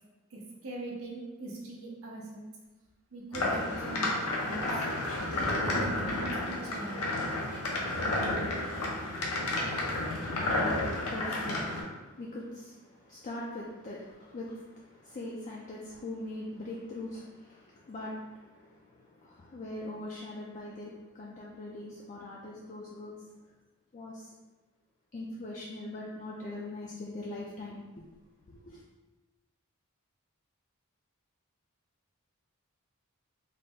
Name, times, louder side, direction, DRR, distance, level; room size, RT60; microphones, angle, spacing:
voice 1, 0.3-2.4 3.1-4.8 5.7-7.0, right 2 dB, 65° right, -3 dB, 0.9 m, -42 dB
sound 1, 3.3-11.8, left 1 dB, 85° left, 0.7 m, -31 dB
voice 2, 9.8-23.3 23.9-24.3 25.1-28.0 28.5-28.8, left 2 dB, 35° left, -4 dB, 0.4 m, -42 dB
4.0 x 2.0 x 3.5 m, 1.2 s
head